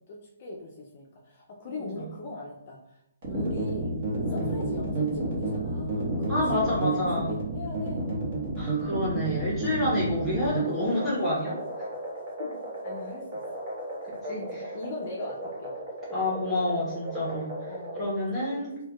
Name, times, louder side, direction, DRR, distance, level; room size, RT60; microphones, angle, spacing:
voice 1, 0.1-3.0 3.4-8.1 10.5-10.8 12.4-12.5 12.8-13.4 14.3-15.7 17.7-18.0 18.3-18.8, left 2 dB, 35° left, -1 dB, 0.5 m, -40 dB
sound 1, 3.2-18.0, right 2 dB, 40° right, 1.1 m, -32 dB
voice 2, 6.3-7.3 8.6-11.8 14.2-14.6 16.1-17.5 17.9-18.7, left 1 dB, 10° left, -9 dB, 0.9 m, -29 dB
4.4 x 2.2 x 2.3 m, 0.82 s
hypercardioid pair, 170°, 0 cm